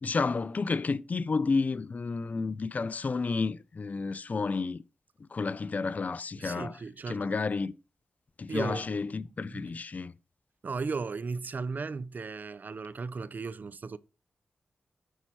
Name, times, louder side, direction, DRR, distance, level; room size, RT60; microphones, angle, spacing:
voice 1, 0.0-4.8 5.3-6.8 7.1-7.7 8.4-10.1, left 4 dB, 45° left, 0.5 m, -31 dB
voice 2, 6.4-7.3 8.5-8.9 9.5-9.7 10.6-14.0, right 4 dB, 55° right, 0.6 m, -36 dB
10.0 x 4.5 x 4.3 m
cardioid pair, 55°, 4 cm